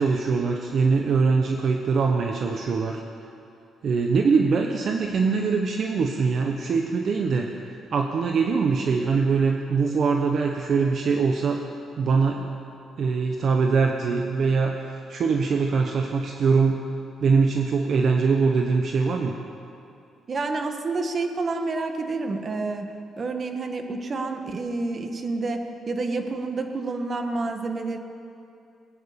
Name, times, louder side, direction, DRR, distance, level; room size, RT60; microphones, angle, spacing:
voice 1, 0.0-3.0 3.8-7.5 7.9-11.6 12.0-12.5 13.0-16.8 17.2-19.3, right 5 dB, 55° right, 3 dB, 1.1 m, -22 dB
voice 2, 20.3-28.0, right 3 dB, 40° right, 5 dB, 1.6 m, -29 dB
22.0 x 9.4 x 6.9 m, 2.6 s
cardioid pair, 90°, 0 cm